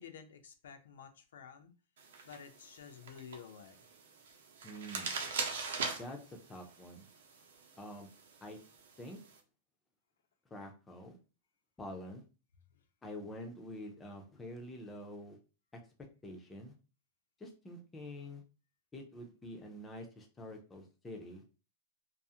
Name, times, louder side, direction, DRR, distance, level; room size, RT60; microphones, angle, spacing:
voice 1, 0.0-1.7 2.2-3.9 12.7-12.8, left 7 dB, 80° left, 0.4 m, -51 dB
sound 1, 2.0-9.4, right 4 dB, 80° right, 0.6 m, -43 dB
voice 2, 4.6-5.2 5.9-7.1 7.8-8.1 8.4-8.6 9.0-9.2 10.5-11.2 11.8-12.2 13.0-15.4 15.7-15.8 16.2-16.7 17.4-18.4 18.9-21.4, left 1 dB, 10° left, 0.3 m, -47 dB
2.4 x 2.4 x 2.7 m
supercardioid pair, 180°, 0 cm